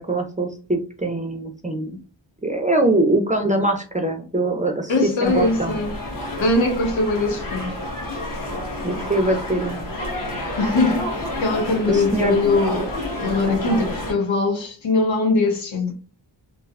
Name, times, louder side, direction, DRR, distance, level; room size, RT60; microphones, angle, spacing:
voice 1, 0.0-1.9 2.4-4.9 5.2-5.8 8.8-9.8 11.9-12.4 13.4-13.8, right 1 dB, 20° right, 0.4 m, -23 dB
voice 2, 4.9-6.0 6.4-7.8 10.6-12.9 13.2-15.9, left 2 dB, 80° left, 0.8 m, -21 dB
sound 1, 5.2-14.1, left 1 dB, 45° left, 0.9 m, -29 dB
3.1 x 2.0 x 2.3 m
wide cardioid pair, 85°, 45 cm